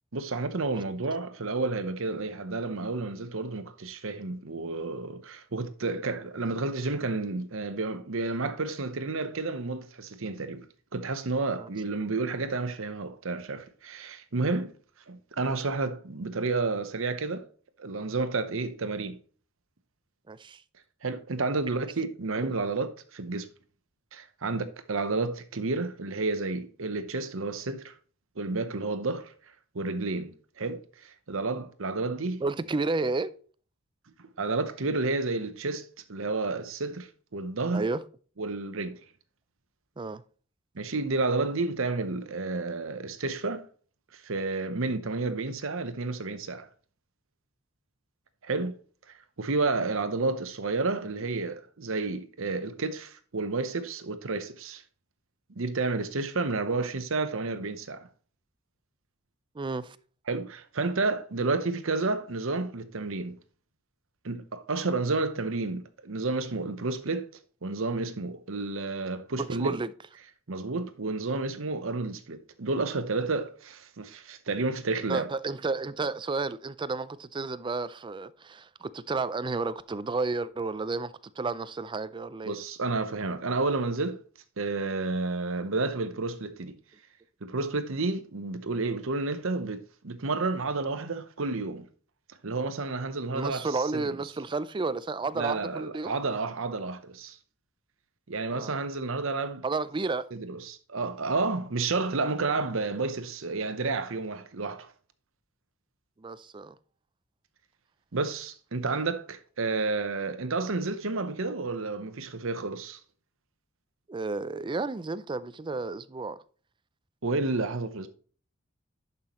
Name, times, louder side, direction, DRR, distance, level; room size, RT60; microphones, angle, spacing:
voice 1, 0.1-10.7 10.9-14.7 15.1-17.5 17.8-19.2 21.0-23.5 24.1-27.9 28.4-29.3 29.7-32.4 34.2-37.9 38.4-39.0 40.7-43.7 44.1-46.7 48.4-48.8 49.4-54.8 55.6-58.1 60.3-63.4 64.2-67.3 67.6-69.8 70.5-75.3 82.4-84.2 84.6-86.8 87.4-91.9 92.4-94.1 95.4-97.4 98.3-99.6 100.3-104.9 108.1-113.0 117.2-118.1, right 3 dB, 65° right, 0.9 m, -31 dB
voice 2, 20.3-20.6 32.4-33.3 37.7-38.0 40.0-40.2 56.8-56.9 59.5-60.0 69.4-69.9 75.1-82.6 93.3-96.2 98.5-98.8 99.6-100.3 106.2-106.7 114.1-116.4, right 3 dB, 25° right, 0.4 m, -32 dB
11.0 x 5.6 x 3.0 m
head